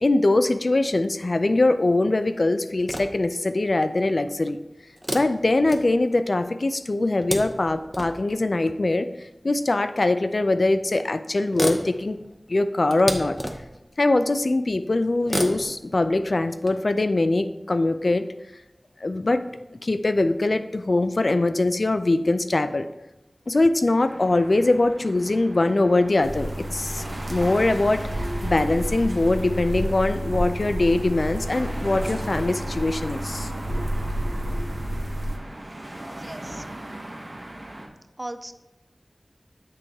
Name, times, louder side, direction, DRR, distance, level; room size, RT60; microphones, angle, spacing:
voice 1, 0.0-4.6 5.1-9.1 9.4-12.2 12.5-13.4 14.0-18.2 19.0-19.5 19.8-22.9 23.5-33.5, left 2 dB, 65° left, 10 dB, 0.3 m, -22 dB
sound 1, 2.7-3.4 5.0-6.3 6.9-8.3 9.5-9.6 10.7-10.8 11.0-11.1 11.4-13.9 15.2-16.7, equal, 5° right, 0.7 m, -32 dB
sound 2, 24.0-37.9, right 1 dB, 50° right, 0.9 m, -38 dB
sound 3, 26.2-35.4, right 1 dB, 80° right, 0.9 m, -30 dB
voice 2, 36.0-36.6 38.2-38.5, right 1 dB, 30° right, 10 dB, 0.3 m, -37 dB
8.4 x 3.2 x 3.5 m, 0.96 s
wide cardioid pair, 45°, 0 cm